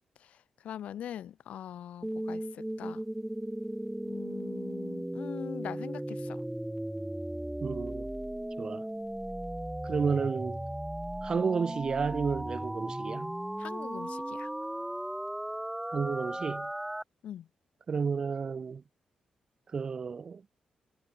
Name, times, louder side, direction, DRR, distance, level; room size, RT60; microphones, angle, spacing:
voice 1, 0.6-3.0 4.0-6.4 13.6-14.5 17.2-17.5, left 10 dB, 75° left, 1.1 m, -42 dB
sound 1, 2.0-17.0, right 1 dB, 5° right, 0.7 m, -36 dB
voice 2, 7.6-8.1 8.6-8.9 9.8-10.6 11.2-13.3 15.9-16.7 17.9-18.8 19.7-20.4, right 5 dB, 35° right, 1.0 m, -31 dB
wide cardioid pair, 165°, 2 cm